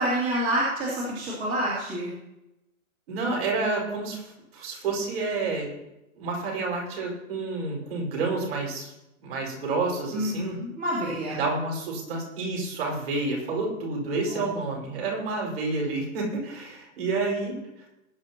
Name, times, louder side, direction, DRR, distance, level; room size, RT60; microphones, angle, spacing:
voice 1, 0.0-2.1 10.1-11.4 14.3-14.5, right 1 dB, 15° right, -7 dB, 2.8 m, -28 dB
voice 2, 3.1-5.7 6.2-8.9 9.2-10.6 11.3-17.8, right 3 dB, 45° right, -1 dB, 5.5 m, -29 dB
20.0 x 10.5 x 3.0 m, 0.90 s
hypercardioid pair, 165°, 43 cm